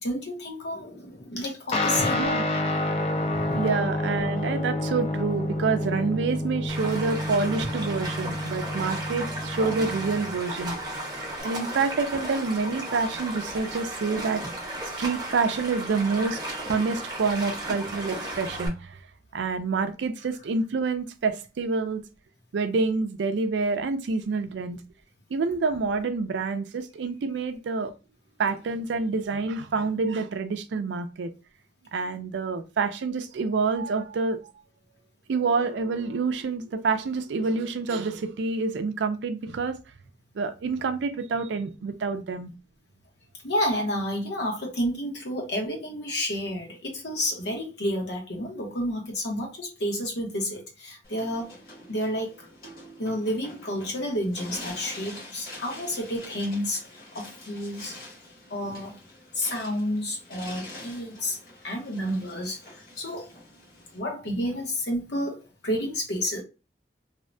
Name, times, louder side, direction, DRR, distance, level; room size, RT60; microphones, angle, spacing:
voice 1, 0.0-2.2 2.5-2.7 3.3-3.6 43.4-51.5 51.9-52.5 53.0-56.8 57.1-58.0 58.5-59.0 59.3-61.4 61.6-62.6 63.0-63.3 63.9-66.4, equal, 75° left, 1.0 m, -30 dB
Guitar, 1.7-11.4, left 1 dB, 35° left, 0.3 m, -29 dB
voice 2, 2.1-2.4 3.3-10.8 11.4-14.4 15.0-19.0 19.3-22.0 22.5-24.8 25.3-27.9 28.4-31.3 31.9-34.5 35.3-39.8 40.4-42.5, right 4 dB, 85° right, 0.4 m, -27 dB
Stream, 6.7-18.7, right 1 dB, 25° right, 0.7 m, -35 dB
sound 1, 51.0-64.0, left 1 dB, 55° left, 1.1 m, -45 dB
2.7 x 2.1 x 2.5 m
head